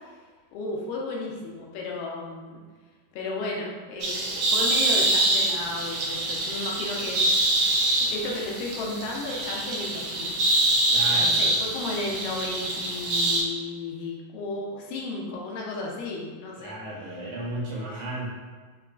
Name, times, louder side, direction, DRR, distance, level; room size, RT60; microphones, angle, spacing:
voice 1, 0.5-2.6 3.1-7.3 7.6-10.4 11.1-16.8 17.9-18.0, left 2 dB, 85° left, -1 dB, 2.2 m, -34 dB
Scuba Diver Worker, 4.0-13.4, right 2 dB, 85° right, 1.4 m, -25 dB
voice 2, 10.9-11.3 16.5-18.3, right 1 dB, 70° right, -6 dB, 2.2 m, -34 dB
5.7 x 2.2 x 2.3 m, 1.5 s
omnidirectional pair, 3.8 m